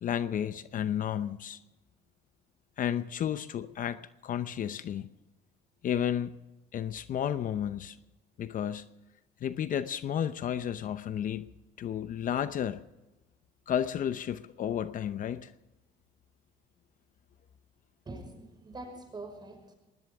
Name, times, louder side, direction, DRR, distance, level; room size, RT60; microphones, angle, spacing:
voice 1, 0.0-1.6 2.8-5.1 5.8-6.4 6.7-8.0 8.4-8.9 9.4-11.5 11.8-12.8 13.7-15.5, left 9 dB, 50° left, 0.8 m, -32 dB
voice 2, 18.1-19.7, right 2 dB, 25° right, 5.9 m, -44 dB
20.5 x 19.0 x 3.6 m
cardioid pair, 110°, 17 cm